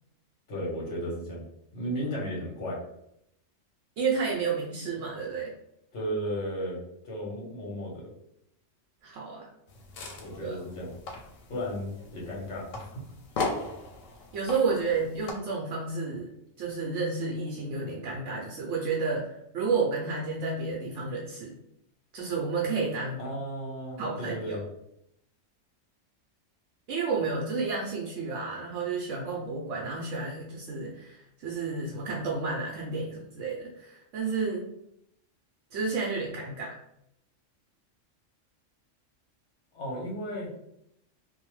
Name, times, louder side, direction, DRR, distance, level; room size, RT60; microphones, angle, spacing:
voice 1, 0.5-1.4 1.7-2.8 5.9-8.1 10.2-10.9 11.5-12.9 23.2-24.6 39.7-40.5, equal, 65° left, -3 dB, 1.3 m, -34 dB
voice 2, 4.0-5.5 9.0-9.5 10.4-10.6 14.3-16.3 16.6-21.5 22.1-23.2 24.0-24.6 26.9-34.7 35.7-36.8, right 4 dB, 75° right, -3 dB, 0.9 m, -31 dB
sound 1, 9.7-15.3, left 3 dB, 85° left, 1.0 m, -38 dB
2.7 x 2.1 x 3.0 m, 0.77 s
omnidirectional pair, 1.3 m